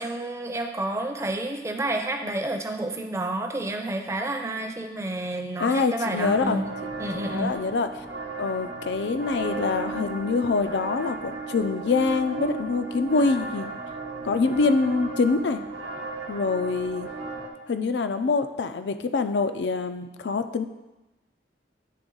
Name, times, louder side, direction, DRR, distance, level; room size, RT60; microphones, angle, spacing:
voice 1, 0.0-6.7 7.0-7.5, right 1 dB, 15° right, 4 dB, 0.5 m, -30 dB
voice 2, 5.6-6.6 7.2-7.9 8.4-13.7 14.2-15.6 16.3-17.1 17.7-20.7, left 4 dB, 75° left, 10 dB, 0.4 m, -25 dB
sound 1, 6.1-17.5, right 3 dB, 65° right, 1.0 m, -35 dB
9.4 x 3.5 x 3.8 m, 1.0 s
head